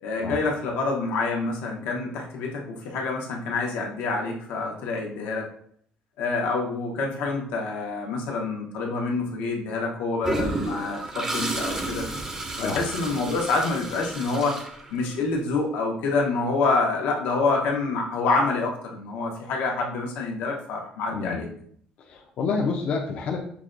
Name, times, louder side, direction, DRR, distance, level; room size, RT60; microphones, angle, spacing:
voice 1, 0.0-5.5 6.2-12.1 12.6-14.6 14.9-21.5, left 3 dB, 85° left, 0 dB, 0.8 m, -27 dB
Toilet flush, 10.2-15.3, right 2 dB, 15° right, 0.5 m, -32 dB
voice 2, 21.1-21.4 22.1-23.4, left 4 dB, 45° left, 0 dB, 0.4 m, -28 dB
5.8 x 2.2 x 2.5 m, 0.63 s
cardioid pair, 160°, 3 cm